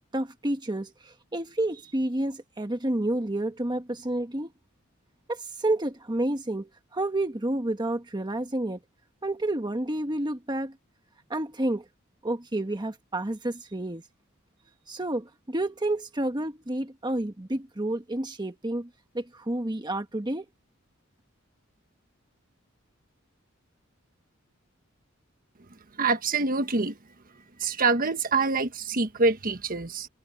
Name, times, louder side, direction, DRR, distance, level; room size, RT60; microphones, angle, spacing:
voice 1, 0.0-4.5 5.3-8.8 9.2-10.8 11.3-11.8 12.2-14.0 14.9-18.9 19.1-20.4, right 1 dB, 20° right, 1.3 m, -30 dB
voice 2, 26.0-26.9 27.6-30.1, right 3 dB, 45° right, 1.4 m, -25 dB
head